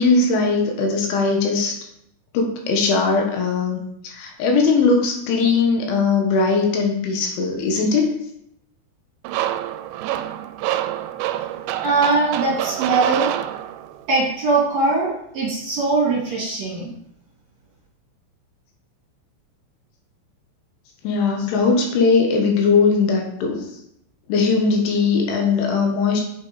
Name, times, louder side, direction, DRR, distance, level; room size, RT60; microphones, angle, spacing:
voice 1, 0.0-1.8 2.3-8.2 16.8-16.9 21.0-23.7 24.3-26.2, left 4 dB, 75° left, 2 dB, 3.6 m, -19 dB
sound 1, 9.2-14.0, right 12 dB, 85° right, 3.0 m, -26 dB
voice 2, 11.8-13.3 14.1-16.9, right 3 dB, 45° right, -6 dB, 2.9 m, -21 dB
8.7 x 6.4 x 4.1 m, 0.75 s
omnidirectional pair, 5.7 m